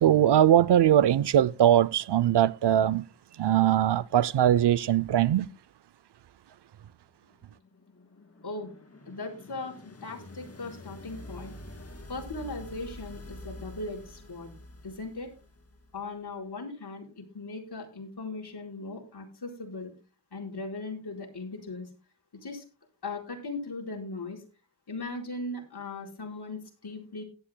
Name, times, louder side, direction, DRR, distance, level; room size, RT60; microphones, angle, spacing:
voice 1, 0.0-3.1 3.4-5.5, right 11 dB, 65° right, 0.5 m, -21 dB
sound 1, 7.3-16.2, left 1 dB, 30° left, 2.4 m, -47 dB
voice 2, 9.1-11.5 12.1-14.5 14.8-15.3 15.9-19.9 20.3-21.9 22.4-22.6 23.0-24.4 24.9-27.2, left 3 dB, 55° left, 4.5 m, -38 dB
17.0 x 11.5 x 2.2 m
wide cardioid pair, 80°, 45 cm